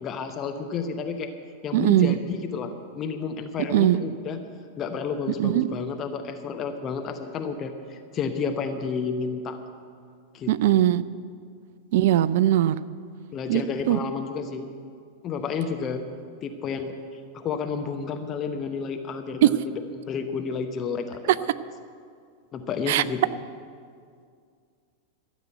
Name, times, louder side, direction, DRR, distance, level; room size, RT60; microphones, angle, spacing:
voice 1, 0.0-1.3 1.6-4.4 4.8-9.6 10.3-10.8 13.3-14.7 15.2-16.0 16.4-17.0 17.3-19.7 20.1-21.5 22.5-23.4, left 5 dB, 30° left, 6 dB, 0.9 m, -31 dB
voice 2, 1.7-2.2 3.7-4.0 5.4-5.7 10.5-11.0 11.9-12.8 13.5-13.6 13.9-14.0 19.4-19.5 22.9-23.0, right 13 dB, 55° right, 16 dB, 0.4 m, -20 dB
13.0 x 7.4 x 9.1 m, 2.2 s
figure-of-eight pair, 90°, 0 cm